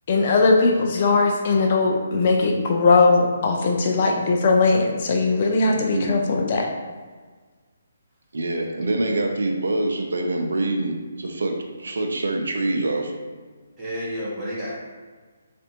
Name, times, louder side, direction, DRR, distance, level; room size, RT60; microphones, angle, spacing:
voice 1, 0.1-6.7, left 3 dB, 40° left, 1 dB, 0.4 m, -19 dB
voice 2, 5.6-6.1 8.3-13.1, right 2 dB, 75° right, 3 dB, 0.5 m, -25 dB
voice 3, 13.8-14.7, equal, 10° right, -10 dB, 1.2 m, -31 dB
4.2 x 2.5 x 2.8 m, 1.5 s
figure-of-eight pair, 145°, 0 cm